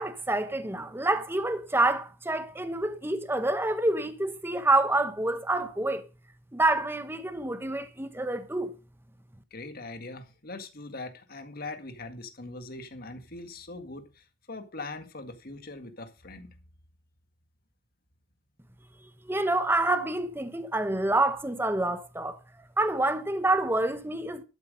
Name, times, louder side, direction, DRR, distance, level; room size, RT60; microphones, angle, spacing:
voice 1, 0.0-6.1 6.5-8.7 19.3-22.4 22.8-24.4, right 2 dB, 10° right, 1.0 m, -27 dB
voice 2, 9.5-16.5, left 2 dB, 50° left, 1.9 m, -41 dB
12.0 x 8.2 x 5.1 m
head